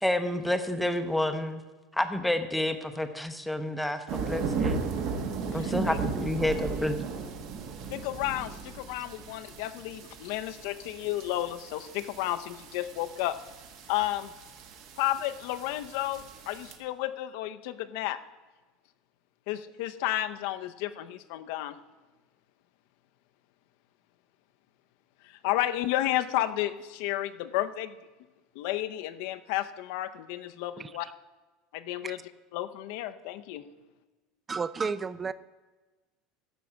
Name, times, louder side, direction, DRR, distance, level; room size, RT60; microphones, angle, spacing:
voice 1, 0.0-1.6 1.9-4.8 5.5-7.0, left 1 dB, 5° left, 0.7 m, -29 dB
sound 1, 4.1-16.8, right 5 dB, 55° right, 1.5 m, -36 dB
voice 2, 5.5-6.0 7.9-13.4 13.9-14.3 15.0-18.2 19.5-21.8 25.2-28.0 28.5-31.1 31.7-32.2 32.5-33.7, left 14 dB, 70° left, 0.6 m, -32 dB
voice 3, 30.8-31.1 32.0-32.2 34.5-35.3, right 5 dB, 20° right, 0.3 m, -32 dB
11.5 x 6.6 x 7.1 m
supercardioid pair, 145°, 0 cm